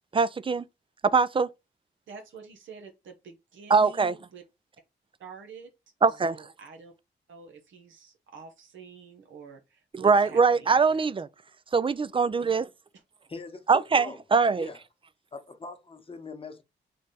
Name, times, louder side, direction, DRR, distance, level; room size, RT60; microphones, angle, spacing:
voice 1, 0.1-0.7 1.0-1.5 3.7-4.1 6.0-6.3 9.9-11.3 11.7-12.7 13.7-14.7, right 5 dB, 25° right, 0.4 m, -22 dB
voice 2, 2.1-4.4 5.2-5.7 6.2-6.9 7.3-11.1, right 5 dB, 80° right, 0.8 m, -47 dB
voice 3, 13.3-14.2 14.6-14.8 15.3-16.6, left 4 dB, 30° left, 1.0 m, -42 dB
3.3 x 2.2 x 4.0 m
supercardioid pair, 45°, 20 cm